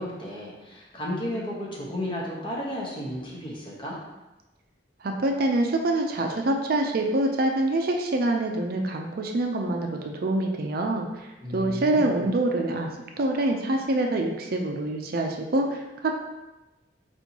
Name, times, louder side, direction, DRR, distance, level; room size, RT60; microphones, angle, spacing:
voice 1, 0.0-4.0 11.4-12.3, left 1 dB, 25° left, -4 dB, 1.0 m, -33 dB
voice 2, 5.0-12.9 13.2-16.1, right 2 dB, 50° right, 3 dB, 0.4 m, -25 dB
4.4 x 4.3 x 2.8 m, 1.1 s
head